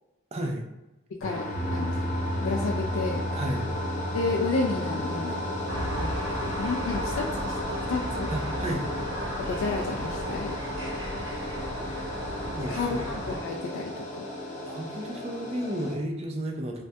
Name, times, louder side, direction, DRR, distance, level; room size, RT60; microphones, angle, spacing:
voice 1, 0.3-0.6 3.3-3.7 8.3-8.9 12.4-13.1 14.6-16.8, right 1 dB, 30° right, 1 dB, 0.4 m, -32 dB
voice 2, 1.1-1.4 1.7-2.0 2.4-3.2 4.1-5.5 6.0-6.1 6.4-7.5 7.9-8.3 9.4-10.6 12.7-14.2, left 3 dB, 85° left, 1 dB, 0.3 m, -31 dB
sound 1, 1.2-16.0, left 1 dB, 35° left, 0.5 m, -34 dB
sound 2, 1.5-11.8, equal, 5° right, 0.8 m, -36 dB
sound 3, 5.7-13.4, equal, 90° right, 0.9 m, -35 dB
3.2 x 2.2 x 2.7 m, 0.95 s
head